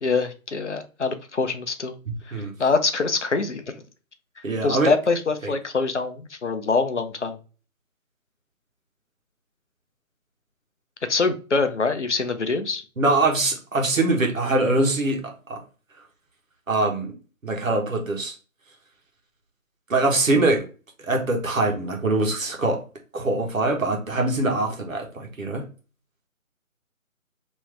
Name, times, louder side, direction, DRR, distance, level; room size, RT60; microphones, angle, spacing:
voice 1, 0.0-2.0 2.3-3.7 4.6-7.4 11.1-12.8, left 4 dB, 55° left, 0.6 m, -24 dB
voice 2, 4.4-4.9 5.4-5.5 13.0-15.6 16.7-17.1 17.4-18.3 19.9-20.6 21.0-22.8 23.1-25.7, right 2 dB, 65° right, 1.3 m, -23 dB
3.5 x 3.0 x 3.1 m
figure-of-eight pair, 175°, 42 cm